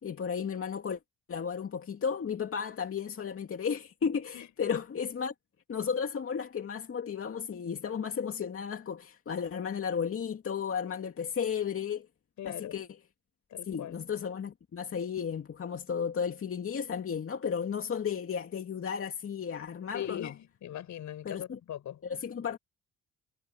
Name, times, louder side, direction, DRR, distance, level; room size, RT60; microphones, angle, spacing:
voice 1, 0.0-1.0 1.3-5.3 5.7-12.1 12.5-12.9 13.7-20.3 21.2-21.6 22.0-22.6, left 7 dB, 45° left, 2.6 m, -34 dB
voice 2, 12.4-12.8 13.5-14.0 19.9-22.0, left 11 dB, 70° left, 6.9 m, -40 dB
cardioid pair, 90°, 30 cm